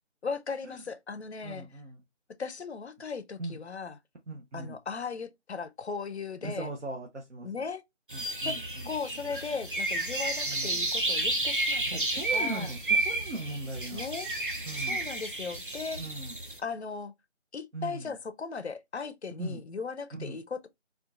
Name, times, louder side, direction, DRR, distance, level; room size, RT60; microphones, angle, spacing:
voice 1, 0.2-1.7 2.4-4.0 4.5-6.7 7.4-7.8 8.4-8.6 8.9-12.7 13.9-14.3 14.8-16.0 16.6-17.1 17.5-20.7, left 5 dB, 65° left, 0.5 m, -37 dB
voice 2, 1.4-2.0 3.4-3.6 4.3-4.8 6.4-7.7 8.1-9.2 10.5-10.8 11.8-14.0 14.6-15.0 16.0-16.4 17.7-18.1 19.4-19.6 20.1-20.4, right 2 dB, 70° right, 0.9 m, -39 dB
sound 1, 8.1-16.6, right 2 dB, 45° right, 0.6 m, -31 dB
3.7 x 2.4 x 2.4 m
figure-of-eight pair, 175°, 36 cm